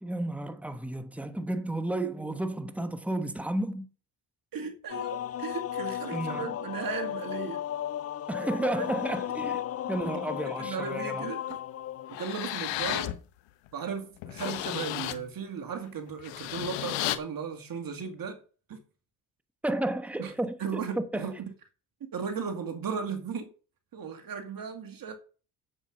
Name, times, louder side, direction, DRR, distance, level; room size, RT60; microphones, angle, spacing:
voice 1, 0.0-3.9 6.1-6.5 8.3-11.2 19.6-21.3, right 1 dB, 5° right, 1.3 m, -32 dB
voice 2, 4.5-7.7 8.5-8.8 10.6-11.6 12.1-13.2 13.7-18.4 18.7-18.8 20.2-20.3 20.6-21.3 22.1-23.5 23.9-25.2, right 6 dB, 50° right, 2.2 m, -36 dB
sound 1, 4.9-12.5, left 11 dB, 35° left, 0.5 m, -35 dB
sound 2, 11.5-11.6 12.1-13.2 13.7-13.8 14.2-15.2 16.1-17.2, left 14 dB, 85° left, 1.0 m, -33 dB
7.8 x 7.6 x 6.5 m
supercardioid pair, 75°, 42 cm